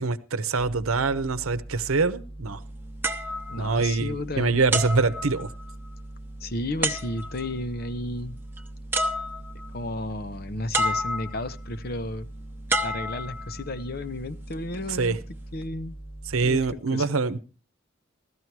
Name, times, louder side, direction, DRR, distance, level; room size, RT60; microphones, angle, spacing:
voice 1, 0.0-2.6 3.6-5.5 14.9-15.2 16.3-17.4, right 4 dB, 90° right, 0.9 m, -24 dB
sound 1, 0.6-16.8, right 1 dB, 25° left, 1.0 m, -42 dB
sound 2, 3.0-4.2 4.7-5.9 6.8-7.5 8.6-8.7 8.9-9.7 10.7-11.5 12.7-13.8 14.5-14.8, right 1 dB, 10° right, 0.9 m, -29 dB
voice 2, 3.5-4.6 6.4-8.4 9.7-12.3 12.8-15.2 15.5-16.0 16.4-17.1, left 1 dB, 45° left, 0.8 m, -33 dB
15.5 x 13.0 x 4.7 m
head